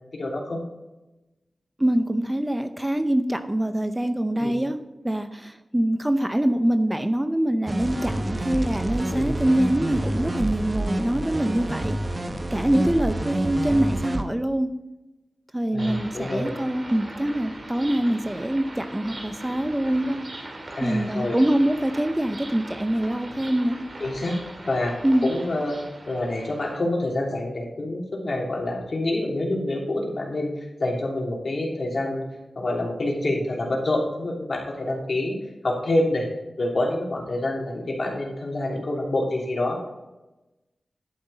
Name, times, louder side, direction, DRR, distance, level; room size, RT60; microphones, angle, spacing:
voice 1, 0.1-0.6 4.3-4.5 9.1-9.3 15.7-16.5 20.8-21.4 24.0-24.4 24.7-24.9 25.2-25.8 26.1-32.2 32.5-35.4 35.6-36.3 36.6-39.9, left 1 dB, 60° left, -1 dB, 3.0 m, -27 dB
voice 2, 1.8-4.8 5.0-12.0 12.5-14.7 15.5-20.2 20.8-23.8 25.0-25.3, right 1 dB, 15° right, 9 dB, 0.6 m, -24 dB
sound 1, 7.7-14.2, right 1 dB, 30° right, 1.0 m, -28 dB
sound 2, 15.8-26.8, right 1 dB, 50° right, 2.4 m, -40 dB
11.0 x 9.4 x 4.0 m, 1.0 s
wide cardioid pair, 80°, 0 cm